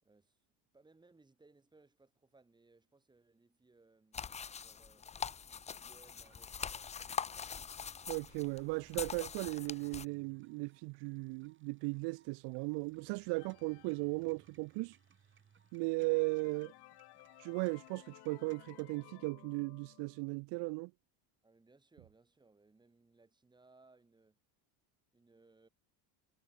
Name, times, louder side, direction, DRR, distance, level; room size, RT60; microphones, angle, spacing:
voice 1, 0.0-0.4 0.7-4.3 4.6-5.1 5.4-7.1 21.4-24.4 25.1-25.7, right 3 dB, 10° right, 3.5 m, -66 dB
sound 1, 4.1-10.0, left 6 dB, 15° left, 0.6 m, -43 dB
sound 2, 6.0-18.9, right 7 dB, 25° right, 5.0 m, -69 dB
voice 2, 8.1-15.0 15.7-16.7 17.4-20.9, right 28 dB, 60° right, 0.7 m, -37 dB
sound 3, 13.2-14.8 15.4-15.5 15.8-20.4, left 20 dB, 55° left, 2.6 m, -59 dB
cardioid pair, 170°, 47 cm